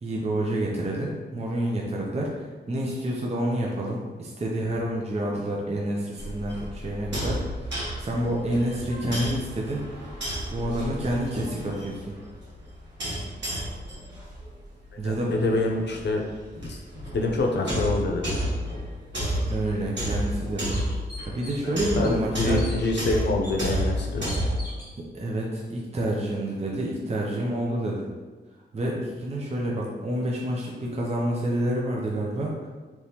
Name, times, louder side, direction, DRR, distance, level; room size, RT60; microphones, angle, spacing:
voice 1, 0.0-9.8 10.5-12.1 15.0-15.3 19.5-20.8 21.3-22.6 25.1-28.1 28.7-32.5, right 1 dB, 35° right, -2 dB, 0.6 m, -28 dB
sound 1, 6.2-24.7, equal, 80° right, 1.5 m, -32 dB
voice 2, 14.9-16.2 16.6-16.8 17.1-18.4 21.6-24.3, left 2 dB, 70° left, 1 dB, 0.6 m, -26 dB
sound 2, 19.7-19.8 20.3-20.4 20.7-21.7 22.0-22.8 23.4-23.5 24.3-24.9, left 1 dB, 20° left, 1.0 m, -42 dB
3.5 x 3.0 x 2.8 m, 1.3 s
wide cardioid pair, 90°, 18 cm